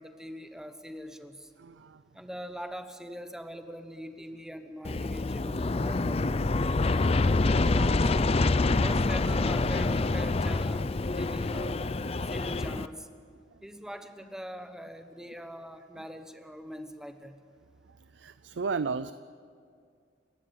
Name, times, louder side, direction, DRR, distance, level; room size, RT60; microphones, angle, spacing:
voice 1, 0.0-1.5 2.1-8.1 8.6-12.0 12.3-13.1 13.6-17.4, equal, 5° right, 7 dB, 1.2 m, -43 dB
voice 2, 1.6-2.0 12.2-12.3 18.1-19.1, right 5 dB, 85° right, 14 dB, 0.5 m, -34 dB
Aircraft, 4.8-12.9, left 3 dB, 35° left, 0.5 m, -26 dB
29.5 x 12.5 x 8.6 m, 2.2 s
head